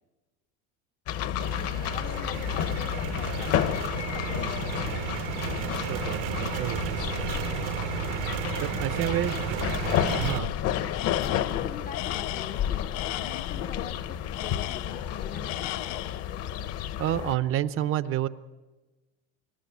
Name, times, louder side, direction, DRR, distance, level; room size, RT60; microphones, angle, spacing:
sound 1, 1.1-17.3, left 10 dB, 40° left, 0.9 m, -31 dB
sound 2, 1.4-10.4, right 13 dB, 65° right, 0.9 m, -33 dB
voice 1, 1.5-4.9 6.3-6.5 9.1-9.5 11.2-15.7, left 7 dB, 25° left, 10 dB, 0.6 m, -43 dB
voice 2, 5.9-7.0 7.5-7.6 8.6-9.3 10.2-10.5 17.0-18.3, right 12 dB, 35° right, 14 dB, 0.6 m, -29 dB
Tools, 10.0-10.6 10.9-13.7 14.3-15.1 15.4-16.3, left 16 dB, 80° left, 0.9 m, -36 dB
26.0 x 12.0 x 9.4 m, 1.2 s
cardioid pair, 155°, 36 cm